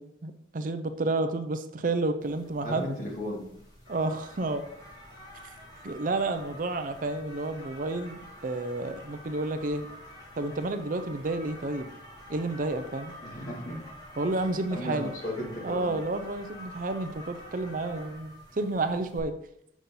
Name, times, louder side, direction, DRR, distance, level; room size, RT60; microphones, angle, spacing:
voice 1, 0.0-2.9 3.9-4.6 5.8-9.9 10.4-11.9 12.3-13.1 14.2-15.1 15.6-19.3, right 2 dB, 45° right, 8 dB, 0.5 m, -30 dB
sound 1, 2.2-19.2, equal, 20° left, 1.9 m, -48 dB
voice 2, 2.6-3.4 13.2-13.8 14.4-16.0, equal, 45° left, -2 dB, 2.2 m, -35 dB
7.2 x 5.5 x 3.8 m, 0.72 s
head